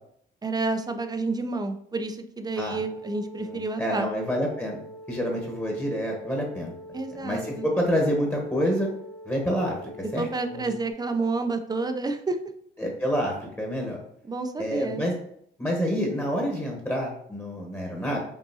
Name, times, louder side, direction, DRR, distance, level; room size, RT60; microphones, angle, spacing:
voice 1, 0.4-4.1 6.9-7.6 10.2-12.4 14.2-15.0, right 3 dB, 20° right, 7 dB, 0.5 m, -29 dB
sound 1, 2.8-10.9, equal, 85° left, 1.3 m, -44 dB
voice 2, 3.4-4.8 5.1-6.7 7.2-8.9 9.2-9.7 10.1-10.6 12.8-14.0 14.6-15.1 15.6-18.2, equal, 10° left, -1 dB, 1.1 m, -28 dB
5.4 x 2.6 x 2.8 m, 0.68 s
cardioid pair, 90°, 20 cm